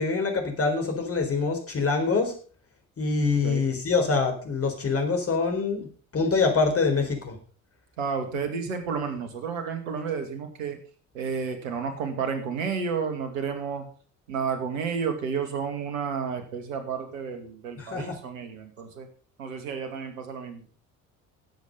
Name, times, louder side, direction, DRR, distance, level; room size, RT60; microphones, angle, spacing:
voice 1, 0.0-2.3 3.0-7.4 17.8-18.2, left 4 dB, 35° left, 4 dB, 4.1 m, -25 dB
voice 2, 8.0-10.8 11.1-13.9 14.3-19.1 19.4-20.7, right 6 dB, 70° right, 6 dB, 2.3 m, -31 dB
15.0 x 7.8 x 5.3 m, 0.42 s
figure-of-eight pair, 50°, 42 cm